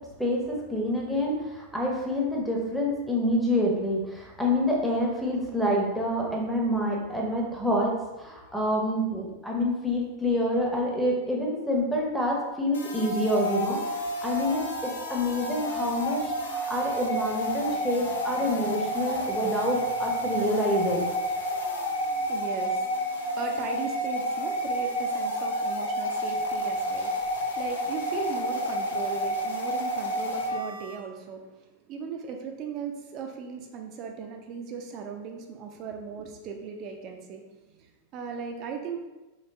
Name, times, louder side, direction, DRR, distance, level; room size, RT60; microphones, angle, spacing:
voice 1, 0.2-13.8 14.2-21.1, left 1 dB, ahead, -3 dB, 1.0 m, -27 dB
sound 1, 12.7-30.9, equal, 70° left, 0.7 m, -30 dB
voice 2, 21.8-39.0, right 6 dB, 35° right, 3 dB, 0.7 m, -38 dB
4.1 x 3.2 x 3.3 m, 1.1 s
figure-of-eight pair, 90°, 0 cm